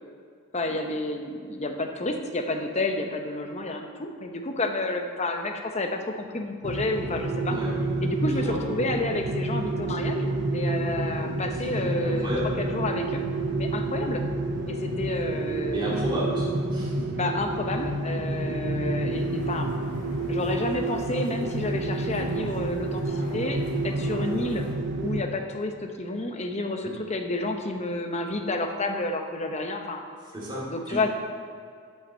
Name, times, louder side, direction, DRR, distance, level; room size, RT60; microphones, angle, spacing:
voice 1, 0.5-6.1 6.3-7.6 8.0-12.3 12.6-13.2 13.6-14.2 14.7-15.9 17.2-19.8 20.3-24.6 25.0-30.0 30.7-31.1, left 2 dB, 30° left, 4 dB, 0.8 m, -30 dB
sound 1, 6.6-25.2, right 2 dB, 50° right, 0.6 m, -29 dB
voice 2, 12.0-12.5 15.7-16.4 16.7-17.0 26.8-26.9 30.3-31.0, equal, 20° right, -8 dB, 2.2 m, -32 dB
sound 2, 19.1-24.7, left 1 dB, 80° left, 1.7 m, -43 dB
7.9 x 5.8 x 7.4 m, 2.3 s
head